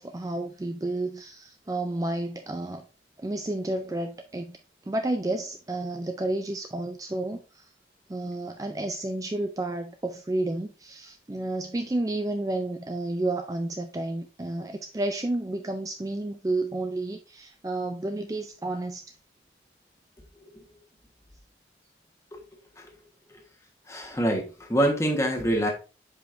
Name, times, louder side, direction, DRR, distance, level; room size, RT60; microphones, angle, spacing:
voice 1, 0.0-2.8 3.2-4.5 4.9-7.7 8.1-19.1, right 2 dB, 20° right, 0.4 m, -31 dB
voice 2, 23.9-25.7, right 1 dB, 15° left, 1.3 m, -25 dB
7.6 x 5.1 x 2.5 m
head